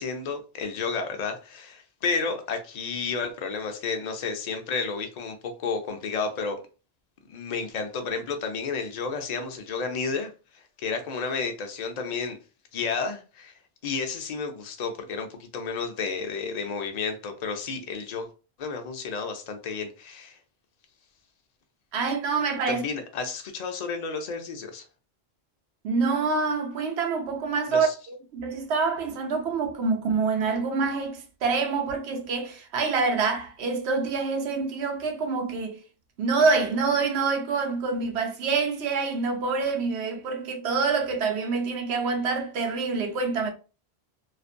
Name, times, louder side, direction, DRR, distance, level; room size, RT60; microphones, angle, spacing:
voice 1, 0.0-6.6 7.3-12.4 12.7-13.5 13.8-18.3 18.6-20.4 22.7-24.8 27.7-27.9, left 5 dB, 50° left, 0.5 m, -31 dB
voice 2, 21.9-22.8 25.8-35.8 36.2-43.5, right 4 dB, 85° right, 0.9 m, -26 dB
2.4 x 2.1 x 2.5 m
omnidirectional pair, 1.1 m